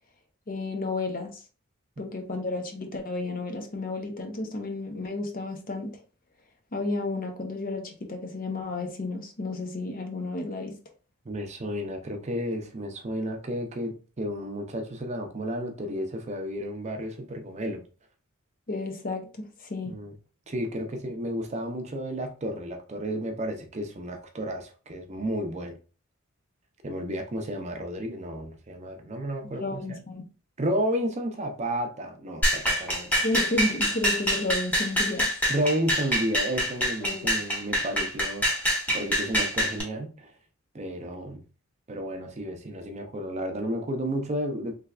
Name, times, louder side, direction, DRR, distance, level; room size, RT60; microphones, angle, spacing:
voice 1, 0.5-1.3 2.0-5.9 6.7-10.7 18.7-19.9 29.4-30.2 33.2-35.3 37.0-37.3, left 2 dB, 40° left, 0.7 m, -32 dB
voice 2, 11.3-17.8 19.9-20.1 20.5-25.8 26.8-30.0 30.6-33.1 35.5-40.3 40.7-41.4 41.9-44.7, equal, 35° right, 0.5 m, -32 dB
sound 1, 32.4-39.8, equal, 5° left, 1.1 m, -26 dB
3.3 x 3.2 x 2.4 m
head